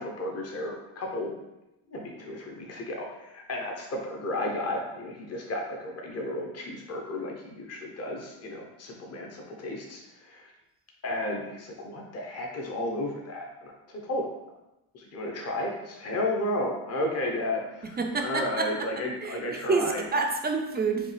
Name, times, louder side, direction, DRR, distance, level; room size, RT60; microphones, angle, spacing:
voice 1, 0.0-1.3 1.9-10.5 11.0-14.3 14.9-20.1, left 1 dB, 30° left, 0 dB, 0.8 m, -33 dB
voice 2, 18.0-18.7 19.2-21.1, right 4 dB, 20° right, 4 dB, 0.4 m, -28 dB
5.2 x 2.3 x 3.3 m, 0.94 s
cardioid pair, 105°, 49 cm